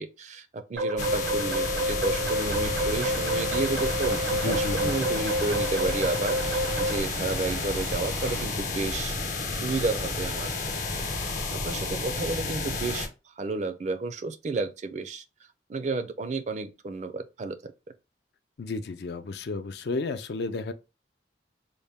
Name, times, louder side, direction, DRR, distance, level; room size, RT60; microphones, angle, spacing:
voice 1, 0.0-10.5 11.2-13.1 13.4-15.2 15.7-17.7, right 3 dB, 40° right, 0.4 m, -32 dB
sound 1, 0.7-7.0, right 1 dB, 90° right, 1.0 m, -29 dB
sound 2, 1.0-13.1, left 3 dB, 45° left, 0.9 m, -31 dB
sound 3, 2.2-8.5, right 3 dB, 70° right, 0.7 m, -38 dB
voice 2, 4.3-5.1 18.6-20.7, left 3 dB, 60° left, 0.4 m, -33 dB
4.0 x 2.1 x 3.4 m
head